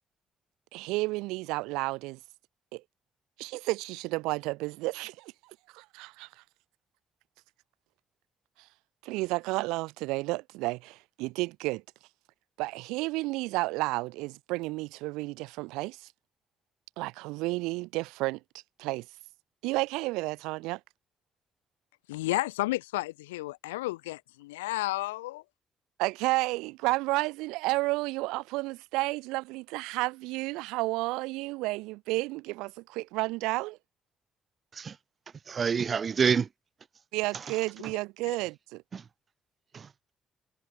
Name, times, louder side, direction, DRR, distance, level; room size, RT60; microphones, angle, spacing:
voice 1, 0.7-2.2 2.7-2.8 3.4-5.3 5.7-6.3 9.0-11.8 12.6-16.1 17.0-18.4 18.8-19.1 19.6-20.8 26.0-33.8 37.1-38.8, right 22 dB, 75° right, 3.3 m, -31 dB
voice 2, 22.1-25.4, left 19 dB, 85° left, 3.9 m, -32 dB
voice 3, 35.5-36.5 37.3-37.6 37.8-37.9 38.9-39.1 39.7-39.9, right 6 dB, 45° right, 7.9 m, -28 dB
hypercardioid pair, 45°, 0 cm